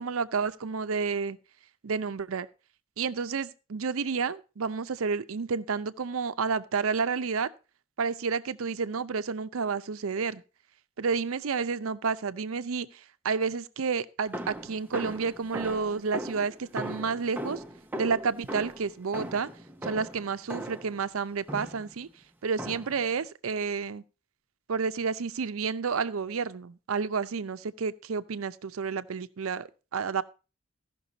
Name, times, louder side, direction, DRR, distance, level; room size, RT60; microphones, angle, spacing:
voice 1, 0.0-1.4 1.8-2.5 3.0-7.5 8.0-10.4 11.0-17.6 18.0-19.5 19.8-22.1 22.4-24.0 24.7-30.2, right 5 dB, 75° right, 0.6 m, -30 dB
sound 1, 14.3-21.0 21.5-21.9 22.6-23.1, equal, 10° right, 0.6 m, -38 dB
15.0 x 6.0 x 4.0 m
head